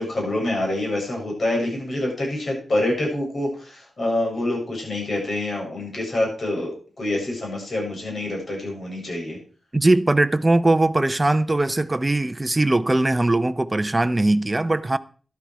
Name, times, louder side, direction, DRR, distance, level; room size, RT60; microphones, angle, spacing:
voice 1, 0.0-9.4, left 1 dB, 50° left, 7.3 m, -26 dB
voice 2, 9.7-15.0, right 2 dB, 15° right, 0.7 m, -20 dB
13.0 x 12.0 x 4.8 m
wide cardioid pair, 160°, 0 cm